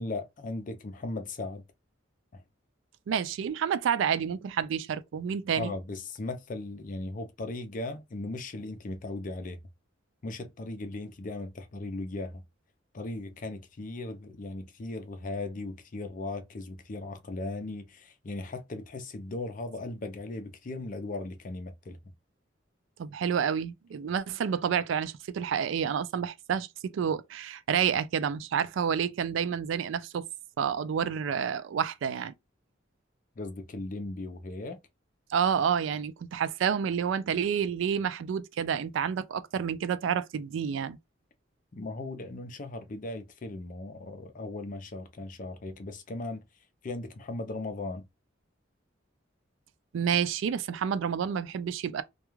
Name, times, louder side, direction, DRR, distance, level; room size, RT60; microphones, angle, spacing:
voice 1, 0.0-1.6 2.3-2.4 5.6-9.6 10.2-12.4 12.9-22.0 33.4-34.8 41.7-46.4 46.8-48.0, left 2 dB, 45° left, 0.5 m, -37 dB
voice 2, 3.1-5.7 23.0-30.2 30.6-32.3 35.3-41.0 49.9-52.0, right 7 dB, 75° right, 0.3 m, -29 dB
2.3 x 2.3 x 3.0 m
head